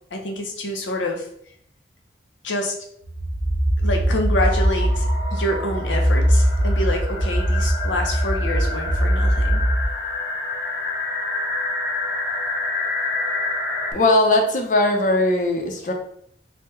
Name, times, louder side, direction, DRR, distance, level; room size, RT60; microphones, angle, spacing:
voice 1, 0.1-1.3 2.4-2.7 3.8-5.1 5.3-9.6, left 1 dB, 90° left, 2 dB, 0.7 m, -27 dB
sound 1, 3.0-9.9, equal, 55° right, 0.6 m, -21 dB
sound 2, 4.4-13.9, left 2 dB, 65° left, 0.9 m, -28 dB
voice 2, 13.9-15.9, left 2 dB, 45° left, 2 dB, 0.5 m, -19 dB
3.3 x 2.2 x 3.0 m, 0.66 s
head